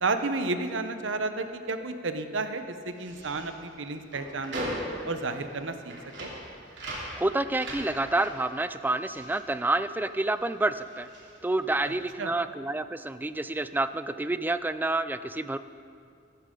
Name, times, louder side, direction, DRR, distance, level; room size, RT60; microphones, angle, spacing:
voice 1, 0.0-4.7 5.1-5.9 6.2-6.3 12.2-12.3, right 3 dB, 90° right, 8 dB, 0.8 m, -31 dB
sound 1, 2.9-10.4 10.6-12.1, right 1 dB, 65° right, 2.9 m, -40 dB
voice 2, 7.2-11.1 11.4-15.6, right 2 dB, 10° right, 12 dB, 0.3 m, -28 dB
15.0 x 13.5 x 3.8 m, 2.3 s
head